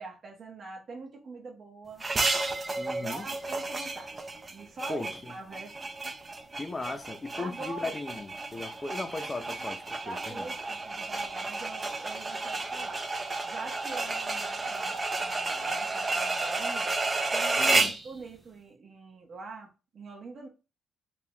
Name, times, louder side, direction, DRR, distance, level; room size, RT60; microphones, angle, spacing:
voice 1, 0.0-2.0 3.0-5.8 7.4-7.9 9.4-9.6 10.0-13.0 13.4-17.0 17.3-20.5, right 3 dB, 50° right, 0 dB, 1.1 m, -44 dB
sound 1, 2.0-18.1, right 3 dB, 25° right, 0.5 m, -32 dB
voice 2, 2.8-3.2 4.9-5.3 6.6-9.8 10.1-10.5 17.6-17.9, left 3 dB, 25° left, 8 dB, 0.6 m, -37 dB
3.8 x 2.4 x 2.9 m, 0.31 s
cardioid pair, 90°, 0 cm